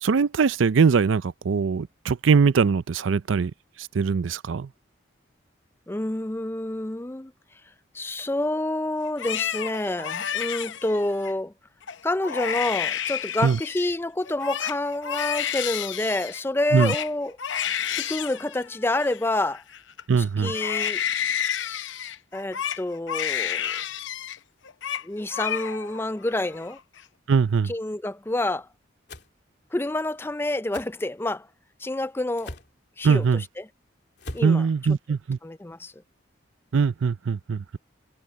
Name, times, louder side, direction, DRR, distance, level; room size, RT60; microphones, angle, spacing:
voice 1, 0.0-3.5 3.8-4.7 13.4-13.6 16.7-16.9 20.1-20.5 27.3-27.7 33.0-33.4 34.4-35.4 36.7-37.8, right 5 dB, 90° right, 0.5 m, -21 dB
voice 2, 5.9-7.3 7.9-11.5 12.0-17.4 18.0-19.6 20.2-21.0 22.3-23.8 25.0-26.8 27.6-28.7 29.7-31.5 31.8-32.5 33.0-33.7 34.3-34.7 35.4-35.9, left 1 dB, 10° left, 0.4 m, -28 dB
Crying sobbing, 9.0-11.3 11.8-12.0 12.2-13.9 14.3-20.0 20.4-24.4 24.6-25.0 25.3-26.0 26.4-27.0, left 9 dB, 80° left, 0.7 m, -30 dB
sound 1, 29.1-29.3 30.7-30.9 32.4-32.7 34.2-34.5, left 1 dB, 60° left, 3.3 m, -39 dB
head